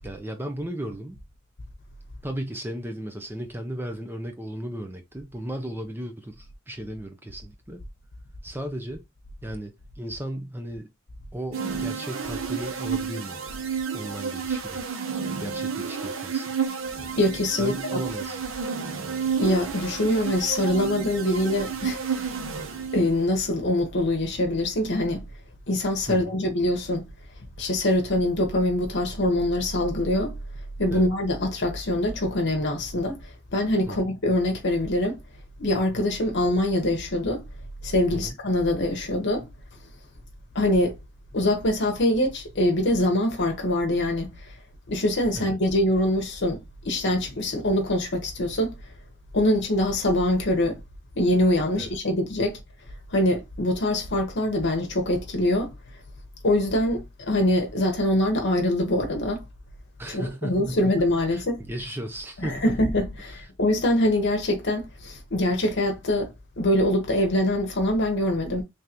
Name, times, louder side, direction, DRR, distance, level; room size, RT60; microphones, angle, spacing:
voice 1, 0.0-1.2 2.2-7.8 8.4-9.0 9.4-10.9 11.3-13.4 13.9-14.8 15.4-16.6 17.6-18.4 26.1-26.3 30.9-31.1 33.9-34.0 38.1-38.4 45.3-45.6 51.7-51.9 60.0-60.9 61.3-62.8 63.3-63.5, right 1 dB, 10° right, 0.5 m, -35 dB
sound 1, 11.5-23.3, right 6 dB, 80° right, 0.8 m, -31 dB
voice 2, 17.2-18.0 19.4-22.2 22.9-25.3 25.7-27.1 27.6-30.4 30.8-33.2 33.5-35.2 35.6-37.4 37.8-39.5 40.5-41.0 41.3-44.5 44.9-48.7 49.3-50.8 51.1-52.6 53.1-55.7 56.4-59.4 60.1-61.6 62.4-68.6, left 1 dB, 60° left, 1.0 m, -24 dB
3.7 x 3.3 x 2.9 m
head